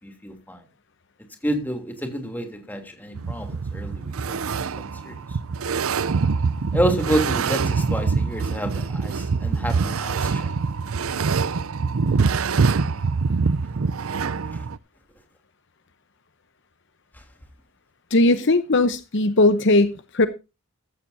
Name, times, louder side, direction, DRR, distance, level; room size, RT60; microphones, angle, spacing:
voice 1, 0.0-0.6 1.4-4.6 5.0-5.4 6.7-10.5 14.5-14.6 17.1-17.2, equal, 10° left, 3.0 m, -29 dB
sound 1, 3.2-14.8, right 4 dB, 75° right, 0.6 m, -24 dB
voice 2, 18.1-20.3, left 2 dB, 55° left, 0.9 m, -18 dB
15.0 x 14.0 x 2.7 m
head